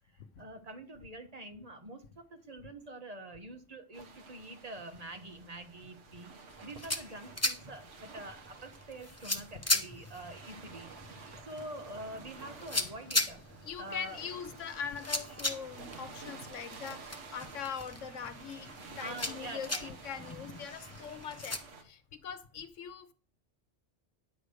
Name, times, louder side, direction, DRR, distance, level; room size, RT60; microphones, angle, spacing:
voice 1, 0.4-6.3 6.6-10.9 11.4-13.4 13.8-14.2 19.0-19.9, right 1 dB, 35° right, 6 dB, 1.3 m, -46 dB
sound 1, 3.9-21.8, right 4 dB, 75° right, 1.7 m, -51 dB
sound 2, 6.5-21.6, left 2 dB, 15° left, 0.9 m, -38 dB
voice 2, 13.6-23.1, left 7 dB, 90° left, 11 dB, 1.2 m, -42 dB
10.5 x 5.0 x 6.4 m, 0.41 s
omnidirectional pair, 1.2 m